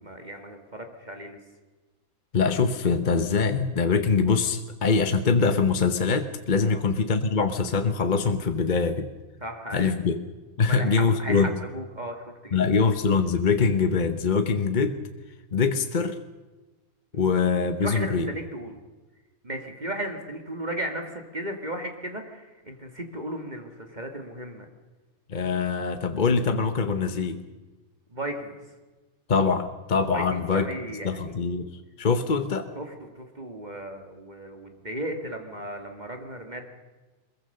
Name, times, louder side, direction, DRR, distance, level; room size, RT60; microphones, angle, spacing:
voice 1, 0.0-1.4 6.6-6.8 9.4-9.9 10.6-12.9 17.1-17.3 17.8-18.8 19.4-24.7 28.1-28.7 30.1-31.5 32.8-36.6, right 1 dB, 30° right, 4 dB, 2.0 m, -36 dB
voice 2, 2.3-9.1 9.7-10.2 10.6-11.5 12.5-15.0 15.5-16.2 17.1-18.3 25.3-27.4 29.3-30.7 31.0-31.7 32.0-32.7, left 5 dB, 35° left, 8 dB, 1.0 m, -23 dB
23.0 x 21.5 x 6.7 m, 1.2 s
omnidirectional pair, 1.5 m